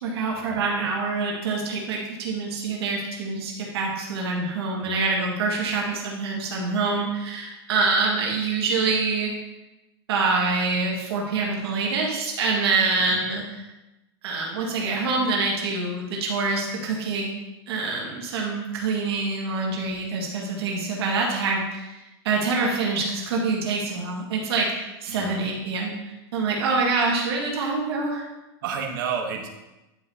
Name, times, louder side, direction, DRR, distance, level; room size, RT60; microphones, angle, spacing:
voice 1, 0.0-9.3 10.1-13.4 14.2-17.3 17.7-28.3, right 3 dB, 70° right, -2 dB, 1.9 m, -26 dB
voice 2, 25.1-25.4 28.6-29.5, right 6 dB, 50° right, 2 dB, 1.1 m, -31 dB
10.5 x 5.5 x 2.8 m, 1.0 s
supercardioid pair, 175°, 14 cm